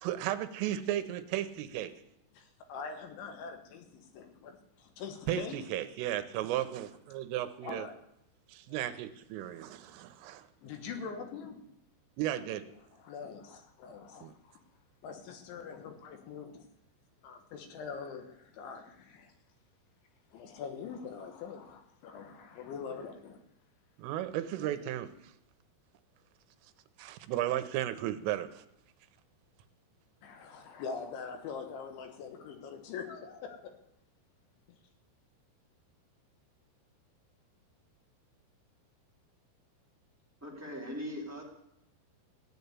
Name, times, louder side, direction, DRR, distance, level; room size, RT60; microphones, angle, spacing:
voice 1, 0.0-1.9 5.3-7.9 8.5-10.5 12.2-12.7 14.2-14.3 24.0-25.1 27.0-28.6, right 12 dB, 80° right, 11 dB, 3.4 m, -34 dB
voice 2, 2.3-5.6 6.6-6.7 7.6-8.0 8.7-8.8 10.6-11.7 12.5-12.6 12.9-14.3 15.0-16.7 17.2-19.3 20.3-23.4 24.6-24.9 30.2-33.7 34.7-34.8, left 5 dB, 70° left, 6 dB, 3.6 m, -43 dB
voice 3, 40.4-41.4, equal, 5° right, -1 dB, 2.1 m, -40 dB
16.0 x 8.0 x 9.6 m, 0.77 s
omnidirectional pair, 5.8 m